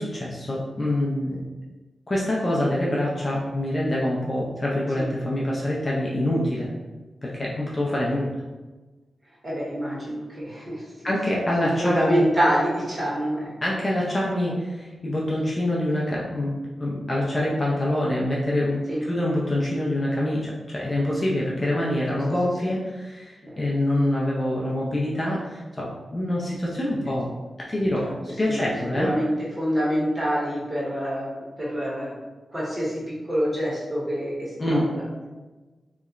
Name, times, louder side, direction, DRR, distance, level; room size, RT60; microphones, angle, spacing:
voice 1, 0.0-1.4 2.1-6.7 7.2-8.3 11.0-12.2 13.6-27.4 27.7-28.1 28.4-29.1 34.6-34.8, left 1 dB, 30° left, -5 dB, 0.4 m, -25 dB
voice 2, 9.4-10.9 11.6-13.5 18.9-19.0 23.4-23.6 28.0-28.7 29.0-29.3 29.6-31.3 31.6-32.2 32.5-35.3, equal, 25° right, -8 dB, 1.0 m, -26 dB
2.8 x 2.1 x 2.4 m, 1.2 s
wide cardioid pair, 115°, 0 cm